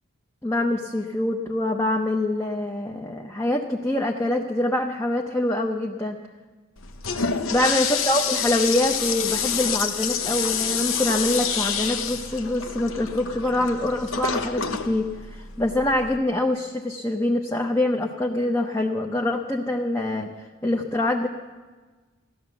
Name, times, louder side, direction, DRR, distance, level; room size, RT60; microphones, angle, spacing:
voice 1, 0.4-6.2 7.5-15.1 15.3-20.3 20.6-21.3, left 1 dB, 15° left, 1 dB, 0.7 m, -25 dB
Toilet flush, 6.8-16.2, left 6 dB, 70° left, 0.9 m, -28 dB
16.0 x 11.5 x 7.0 m, 1.3 s
head